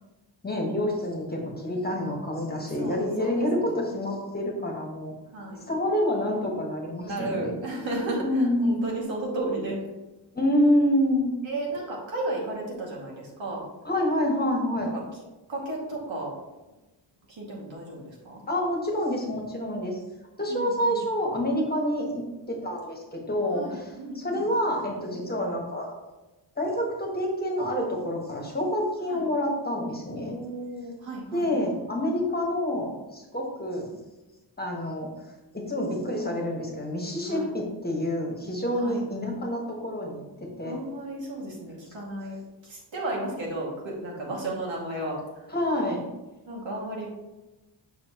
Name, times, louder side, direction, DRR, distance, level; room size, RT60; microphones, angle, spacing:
voice 1, 0.4-5.1 5.7-7.6 8.2-8.8 10.3-11.3 13.8-15.0 18.5-20.0 20.4-25.9 26.6-30.3 31.3-34.0 34.6-35.1 35.5-40.7 45.5-46.1, left 1 dB, 20° left, 0 dB, 1.5 m, -27 dB
voice 2, 2.8-3.8 5.3-5.7 7.0-9.8 11.4-13.6 14.8-15.0 15.5-16.3 17.3-18.4 20.5-21.0 23.5-24.4 29.1-29.2 30.1-31.5 37.2-37.5 38.8-39.0 40.6-42.4 42.6-45.5 46.4-47.1, right 2 dB, 85° right, -3 dB, 2.3 m, -34 dB
7.0 x 6.2 x 3.0 m, 1.1 s
wide cardioid pair, 125°, 45 cm